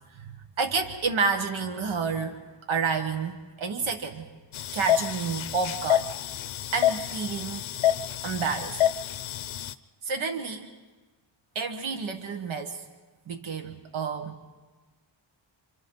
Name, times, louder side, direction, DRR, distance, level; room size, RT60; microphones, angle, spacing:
voice 1, 0.1-2.4 2.7-4.3 4.7-6.1 6.7-7.7 8.2-8.8 10.0-10.7 11.5-12.8 13.3-14.4, right 5 dB, 80° right, 4 dB, 1.5 m, -30 dB
sound 1, 4.5-9.7, left 11 dB, 85° left, 0.7 m, -28 dB
28.5 x 26.5 x 3.9 m, 1.3 s
wide cardioid pair, 165°, 47 cm